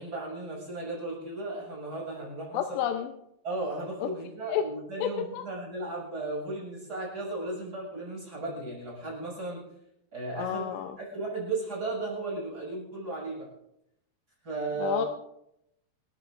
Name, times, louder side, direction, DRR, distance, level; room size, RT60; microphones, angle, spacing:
voice 1, 0.0-2.6 3.4-9.6 10.1-10.6 11.0-13.5 14.4-15.0, right 2 dB, 20° right, -3 dB, 7.6 m, -35 dB
voice 2, 2.5-3.1 4.0-4.1 4.5-4.6 5.0-5.4 10.4-11.0 14.8-15.1, left 9 dB, 85° left, 5 dB, 3.0 m, -30 dB
27.5 x 14.0 x 2.6 m, 0.78 s
omnidirectional pair, 4.9 m